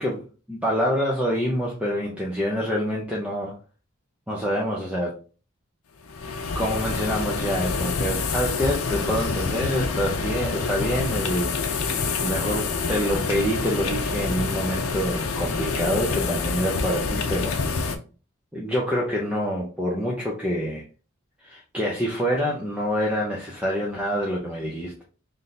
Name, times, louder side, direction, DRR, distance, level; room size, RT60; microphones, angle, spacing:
voice 1, 0.0-3.6 4.3-5.2 6.5-17.6 18.5-20.8 21.4-25.0, equal, 5° right, 0.6 m, -26 dB
sound 1, 6.0-18.0, left 4 dB, 85° left, 0.6 m, -27 dB
3.3 x 2.7 x 4.0 m
head